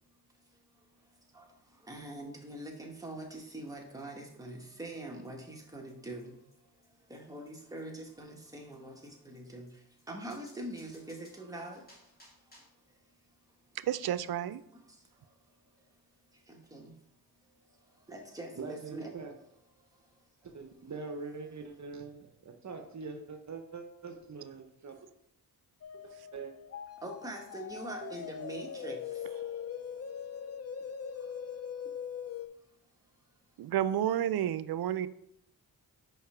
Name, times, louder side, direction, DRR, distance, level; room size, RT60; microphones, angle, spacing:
voice 1, 0.4-13.1 14.9-15.9 16.3-17.0 17.4-19.1 19.8-20.2 27.0-29.4 31.1-31.6 32.2-32.3, right 1 dB, 10° right, 0 dB, 1.6 m, -45 dB
sound 1, 2.7-2.8 3.0-3.1 3.3-3.4 3.7-3.8 4.0-4.1 4.3-4.4 4.6-4.7 4.9-5.0 5.2-5.3 5.6-5.7 5.9-6.0 6.2-6.3 6.5-6.6 6.8-6.9 7.1-7.2 7.5-7.6 7.8-7.9 8.1-8.2 8.4-8.5 8.7-8.8 9.0-9.1 9.3-9.4 9.7-9.8 10.0-10.1 10.3-12.8, left 1 dB, 25° left, 2.9 m, -62 dB
voice 2, 13.7-14.6 26.2-26.3 33.6-35.1, right 11 dB, 70° right, 16 dB, 0.5 m, -31 dB
voice 3, 18.6-19.3 20.4-25.1 26.0-26.5 28.0-28.1, right 4 dB, 45° right, 5 dB, 0.8 m, -43 dB
sound 2, 25.8-32.5, left 8 dB, 40° left, 0.5 m, -41 dB
5.7 x 4.9 x 4.4 m, 0.74 s
cardioid pair, 65°, 39 cm